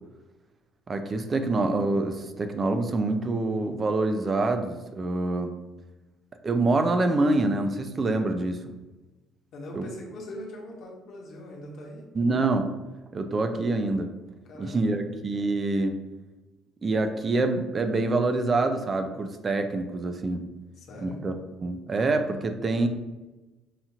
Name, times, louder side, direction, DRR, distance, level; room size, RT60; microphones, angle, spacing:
voice 1, 0.9-5.5 6.4-8.7 9.8-9.9 12.1-12.7 13.1-14.1 14.6-16.0 16.8-20.4 21.0-21.3 21.6-22.9, right 2 dB, 25° right, 7 dB, 0.3 m, -26 dB
voice 2, 9.5-12.1 14.4-15.0 20.8-21.2, left 1 dB, 50° left, -1 dB, 0.9 m, -41 dB
5.7 x 2.4 x 2.8 m, 1.1 s
cardioid pair, 165°, 0 cm